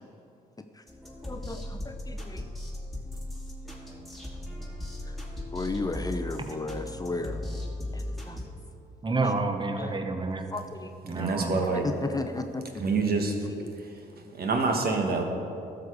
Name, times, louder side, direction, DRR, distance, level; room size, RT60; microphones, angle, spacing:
sound 1, 0.9-8.4, left 1 dB, ahead, 2.2 m, -37 dB
voice 1, 1.2-2.4 5.1-5.2 5.5-7.4 7.9-8.4 9.2-9.3 9.8-9.9 10.5-10.9 11.4-12.6 13.6-13.7, left 3 dB, 20° left, 6 dB, 0.6 m, -34 dB
voice 2, 9.0-10.5 11.0-11.8, right 3 dB, 25° right, 6 dB, 1.0 m, -29 dB
voice 3, 11.1-11.8 12.7-13.4 13.8-14.0 14.3-15.2, right 4 dB, 55° right, 3 dB, 1.5 m, -26 dB
12.5 x 6.8 x 4.8 m, 2.7 s
supercardioid pair, 55°, 18 cm